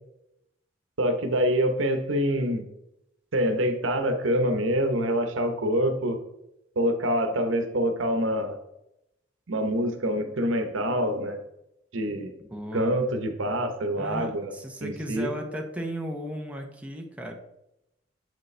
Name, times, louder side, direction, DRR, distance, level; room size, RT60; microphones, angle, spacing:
voice 1, 1.0-2.7 3.3-6.2 6.8-8.6 9.5-11.4 11.9-12.3 12.7-14.5 14.8-15.3, equal, 85° right, 7 dB, 0.9 m, -26 dB
voice 2, 12.5-13.0 14.0-17.3, equal, 5° right, 2 dB, 0.7 m, -35 dB
7.4 x 5.2 x 3.2 m, 0.86 s
head